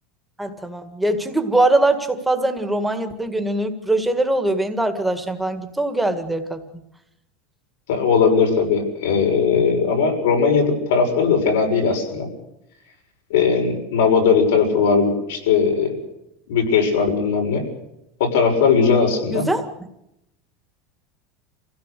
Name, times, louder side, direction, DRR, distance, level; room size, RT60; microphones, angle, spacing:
voice 1, 0.4-6.6 19.3-19.7, right 2 dB, 5° right, 6 dB, 2.0 m, -22 dB
voice 2, 7.9-12.3 13.3-16.0 16.5-17.7 18.2-19.5, left 5 dB, 90° left, 3 dB, 6.7 m, -18 dB
26.0 x 16.5 x 6.8 m, 0.83 s
supercardioid pair, 150°, 0 cm